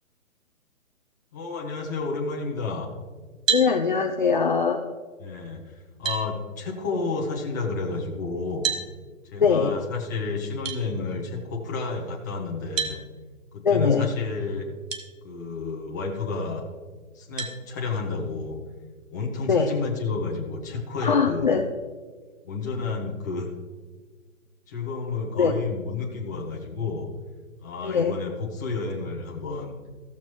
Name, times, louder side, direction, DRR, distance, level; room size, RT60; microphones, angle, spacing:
voice 1, 1.3-2.9 5.2-8.7 9.3-13.0 13.5-14.7 15.2-16.6 17.1-18.6 19.1-21.5 22.4-23.5 24.7-27.1 27.6-29.8, left 4 dB, 15° left, -3 dB, 0.8 m, -31 dB
voice 2, 3.5-4.8 9.4-9.7 13.6-14.1 19.5-19.7 21.0-21.6 25.4-25.5 27.8-28.1, left 5 dB, 40° left, 3 dB, 0.4 m, -21 dB
sound 1, 3.5-3.7 5.4-5.5 6.0-6.3 8.6-8.9 10.6-10.8 12.8-13.0 14.9-15.0 15.7-15.8 17.4-17.6, right 6 dB, 65° right, 1.5 m, -27 dB
15.0 x 7.1 x 3.1 m, 1.4 s
hypercardioid pair, 165°, 42 cm